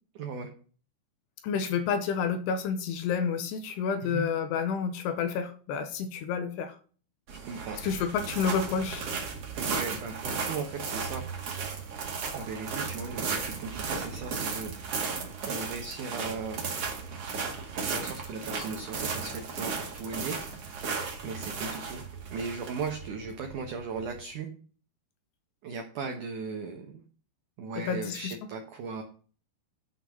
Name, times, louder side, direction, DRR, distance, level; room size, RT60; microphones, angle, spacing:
voice 1, 0.1-0.5 4.0-4.2 7.3-7.8 9.6-11.3 12.3-14.7 15.5-16.7 17.7-20.4 21.2-22.0 22.3-24.5 25.6-27.0 27.6-29.0, right 5 dB, 80° right, 4 dB, 1.8 m, -37 dB
voice 2, 1.4-6.7 7.8-9.0 27.8-28.3, left 6 dB, 75° left, 9 dB, 2.7 m, -29 dB
sound 1, 7.3-24.2, right 5 dB, 45° right, 2.3 m, -35 dB
10.0 x 5.9 x 6.3 m, 0.41 s
omnidirectional pair, 5.3 m